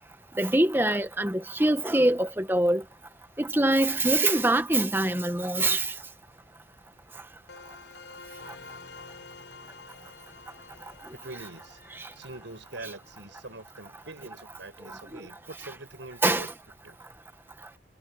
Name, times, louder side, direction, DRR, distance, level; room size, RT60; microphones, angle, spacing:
voice 1, 0.3-2.8 3.4-5.9 11.9-12.1 14.9-15.2 16.2-16.5, right 1 dB, 10° right, 1.2 m, -24 dB
sound 1, 7.5-14.2, left 4 dB, 80° left, 5.4 m, -49 dB
voice 2, 11.2-11.8 12.1-16.5 16.8-17.0, right 2 dB, 90° right, 7.8 m, -44 dB
head